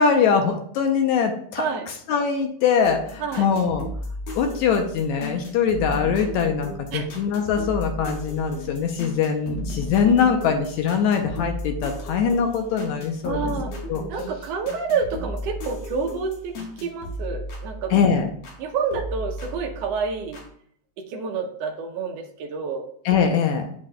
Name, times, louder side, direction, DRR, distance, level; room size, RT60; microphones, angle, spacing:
voice 1, 0.0-1.7 2.1-3.9 4.4-13.5 13.9-14.0 17.9-18.3 23.1-23.7, left 6 dB, 80° left, 4 dB, 1.8 m, -22 dB
sound 1, 2.8-18.6 18.9-20.5, left 1 dB, 55° left, 2.1 m, -35 dB
voice 2, 13.2-13.7 14.1-18.0 18.6-20.4 21.0-22.9, right 5 dB, 85° right, 3 dB, 1.4 m, -28 dB
8.6 x 5.8 x 2.2 m, 0.62 s
omnidirectional pair, 3.8 m